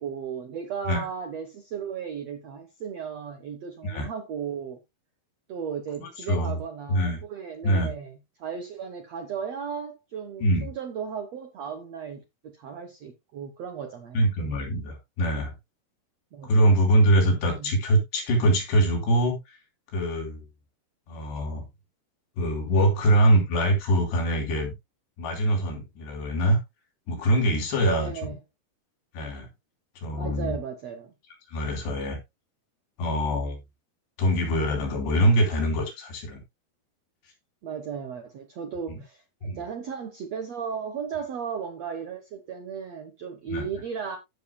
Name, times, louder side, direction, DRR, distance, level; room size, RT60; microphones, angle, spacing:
voice 1, 0.0-4.8 5.5-14.3 16.3-16.8 17.2-17.8 27.8-28.4 30.1-31.1 37.6-44.2, right 7 dB, 75° right, 1.5 m, -35 dB
voice 2, 6.0-6.5 6.9-7.2 7.6-7.9 10.4-10.7 14.1-15.5 16.4-19.6 19.9-20.5 21.1-21.7 22.4-24.7 25.2-26.6 27.1-28.3 29.1-29.5 30.0-30.6 31.5-32.2 33.0-33.6 34.2-36.4 38.9-39.0 39.4-39.6 43.5-43.6, right 1 dB, 90° left, 6.0 m, -23 dB
15.0 x 6.7 x 2.2 m
omnidirectional pair, 4.7 m